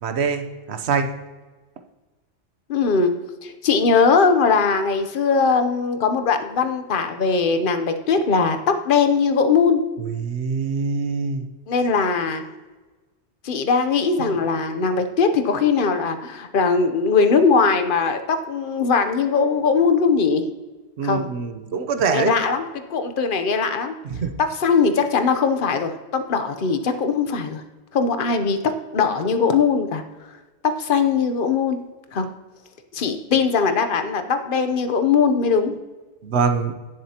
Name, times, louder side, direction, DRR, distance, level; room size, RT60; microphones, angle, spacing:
voice 1, 0.0-1.1 10.1-11.4 14.2-14.3 21.0-22.6 24.1-24.3 36.2-36.7, right 5 dB, 65° right, 8 dB, 1.1 m, -24 dB
voice 2, 2.7-3.1 3.4-9.8 11.7-12.4 13.4-20.5 21.0-21.3 22.1-22.6 22.9-24.0 24.4-27.6 27.9-30.0 30.6-31.8 32.1-32.3 32.9-35.8, left 5 dB, 50° left, 8 dB, 1.0 m, -20 dB
17.0 x 7.4 x 2.9 m, 1.3 s
omnidirectional pair, 1.2 m